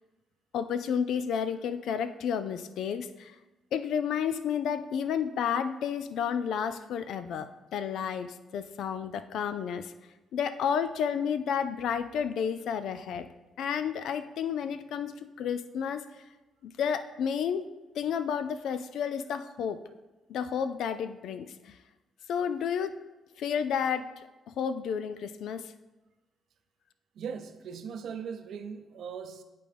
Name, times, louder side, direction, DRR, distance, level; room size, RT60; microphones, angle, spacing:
voice 1, 0.5-3.3 3.7-9.9 10.3-13.3 13.6-16.0 16.6-17.7 18.0-19.8 20.3-21.8 22.3-23.0 23.4-25.7, left 7 dB, 75° left, 11 dB, 0.4 m, -31 dB
voice 2, 27.2-29.4, right 6 dB, 65° right, 8 dB, 0.6 m, -39 dB
10.5 x 3.8 x 3.4 m, 1.1 s
cardioid pair, 90°, 0 cm